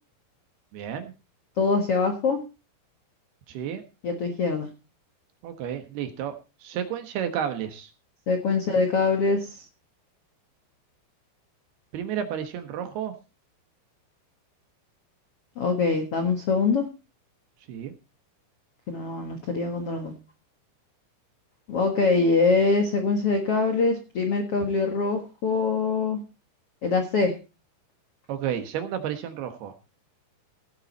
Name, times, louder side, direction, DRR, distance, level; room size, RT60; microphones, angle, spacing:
voice 1, 0.7-1.1 3.5-3.8 5.4-6.3 6.6-7.9 11.9-13.1 17.7-17.9 28.3-29.7, right 9 dB, 70° right, 8 dB, 2.9 m, -31 dB
voice 2, 1.6-2.4 4.0-4.7 8.3-9.6 15.6-16.9 18.9-20.1 21.7-26.2 26.8-27.3, left 4 dB, 75° left, 5 dB, 1.3 m, -24 dB
17.0 x 8.7 x 4.1 m, 0.31 s
omnidirectional pair, 5.4 m